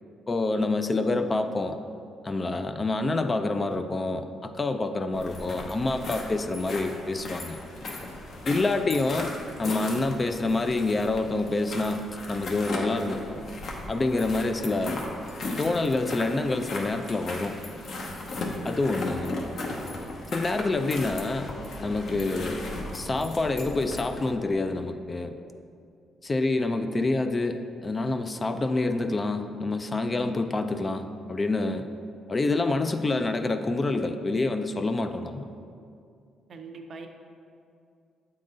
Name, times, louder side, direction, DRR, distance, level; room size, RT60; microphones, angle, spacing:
voice 1, 0.3-1.8 2.2-7.6 8.5-9.3 9.6-13.4 13.9-15.0 15.6-17.6 18.6-19.4 20.3-21.6 21.8-22.6 22.9-25.3 26.2-31.9 32.3-35.5, left 2 dB, 30° left, 8 dB, 0.3 m, -27 dB
sound 1, 5.1-24.3, left 2 dB, 60° left, 0.8 m, -36 dB
voice 2, 8.4-8.8 18.6-19.0 36.5-37.1, right 3 dB, 50° right, 4 dB, 0.6 m, -43 dB
7.7 x 3.8 x 3.8 m, 2.4 s
cardioid pair, 90°, 0 cm